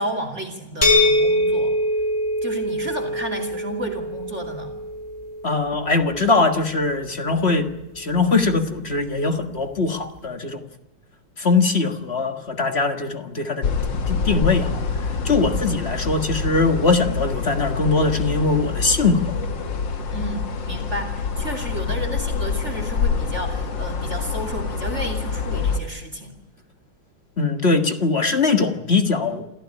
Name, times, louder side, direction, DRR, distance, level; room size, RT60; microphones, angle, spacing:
voice 1, 0.0-1.7 2.4-4.7 20.1-26.3, right 1 dB, 35° right, 7 dB, 2.8 m, -32 dB
sound 1, 0.8-6.6, left 1 dB, 10° left, 4.5 m, -23 dB
voice 2, 5.4-7.7 8.0-10.6 11.4-13.7 14.1-19.4 27.4-29.5, left 3 dB, 30° left, 6 dB, 1.7 m, -21 dB
sound 2, 13.6-25.8, left 5 dB, 60° left, 2.3 m, -26 dB
28.0 x 14.5 x 10.0 m, 1.0 s
omnidirectional pair, 2.3 m